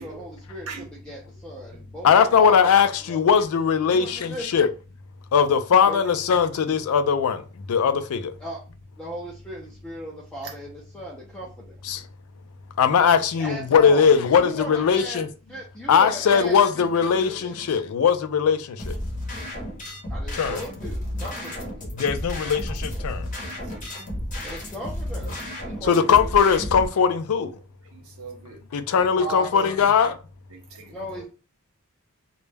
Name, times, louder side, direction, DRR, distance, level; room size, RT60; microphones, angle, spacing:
voice 1, 0.0-2.7 3.0-3.2 3.9-4.5 5.9-6.1 8.4-8.6 9.0-11.8 13.4-15.2 15.5-17.6 20.1-21.7 24.4-25.3 25.6-26.5 28.9-29.8 30.9-31.3, right 1 dB, 5° left, 0.5 m, -37 dB
voice 2, 2.0-4.7 5.3-7.4 7.7-8.3 11.8-12.0 12.8-15.3 15.9-18.9 20.3-20.6 21.9-23.2 25.9-27.5 28.7-30.1, left 7 dB, 80° left, 0.4 m, -20 dB
sound 1, 18.8-26.9, left 1 dB, 35° left, 0.8 m, -32 dB
voice 3, 25.5-26.2 27.9-28.6 29.8-29.9 30.5-31.2, right 5 dB, 75° right, 0.5 m, -41 dB
2.2 x 2.0 x 3.2 m
head